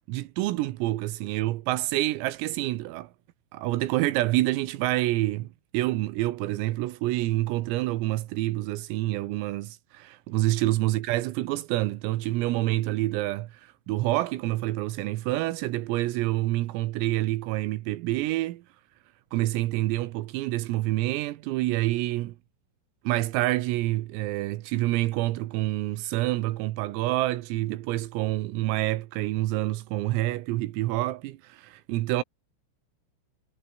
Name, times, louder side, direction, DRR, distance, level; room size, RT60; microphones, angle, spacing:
voice 1, 0.1-3.1 3.5-5.5 5.7-18.6 19.3-22.4 23.1-32.2, right 17 dB, 85° right, 3.8 m, -27 dB
omnidirectional pair, 6.0 m